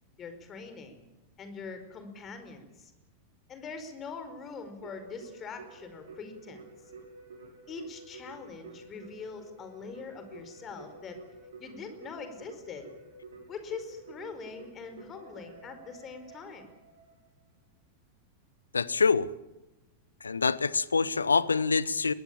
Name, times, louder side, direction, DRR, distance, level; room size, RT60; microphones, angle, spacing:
voice 1, 0.2-1.0 1.4-2.9 3.5-6.6 7.7-11.2 11.6-12.9 13.5-16.7, left 5 dB, 25° left, 4.9 m, -43 dB
Keyboard (musical), 4.8-17.3, right 3 dB, 65° right, 6.7 m, -50 dB
voice 2, 18.7-19.3 20.2-22.1, left 4 dB, 75° left, 0.9 m, -25 dB
22.5 x 18.5 x 8.8 m
figure-of-eight pair, 90°, 0 cm